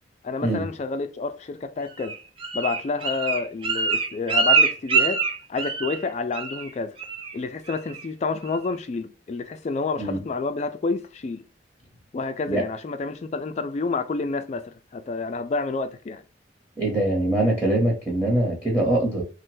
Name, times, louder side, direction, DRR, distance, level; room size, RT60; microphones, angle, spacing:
voice 1, 0.2-2.2 2.5-5.2 5.5-7.0 7.3-11.4 12.1-16.2, left 4 dB, 40° left, 0.3 m, -29 dB
Bird, 2.0-6.1 6.3-6.7 7.0-7.3 7.7-8.1 8.5-8.6, right 5 dB, 30° right, 0.4 m, -24 dB
voice 2, 16.8-19.2, right 1 dB, 10° right, 1.0 m, -23 dB
3.2 x 2.2 x 3.0 m
head